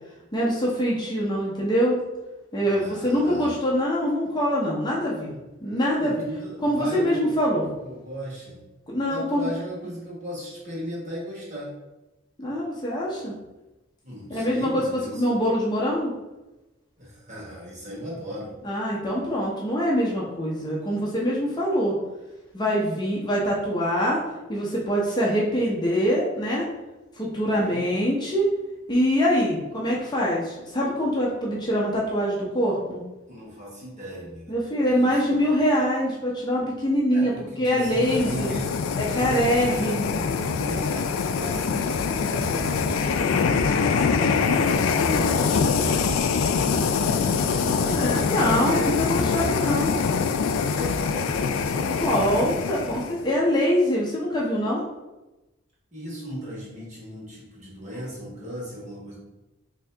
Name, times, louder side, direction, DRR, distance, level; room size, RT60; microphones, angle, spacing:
voice 1, 0.3-2.0 2.5-5.3 5.6-6.1 6.6-7.7 8.9-9.5 12.4-13.3 14.3-16.1 18.6-21.9 22.5-24.2 24.5-26.6 27.2-28.5 28.9-33.0 34.5-37.3 37.6-38.5 39.1-40.2 47.8-49.9 51.8-54.8, equal, 20° left, -4 dB, 0.6 m, -24 dB
voice 2, 2.6-3.6 5.9-7.4 7.8-8.6 9.1-11.7 14.0-15.2 17.0-18.5 27.4-27.8 33.3-34.5 34.8-35.6 37.1-40.0 40.5-46.4 47.1-49.1 50.5-52.4 55.9-59.2, equal, 40° right, -6 dB, 1.4 m, -36 dB
sound 1, 37.8-53.2, left 5 dB, 90° left, 0.3 m, -24 dB
3.6 x 2.7 x 3.3 m, 1.0 s
head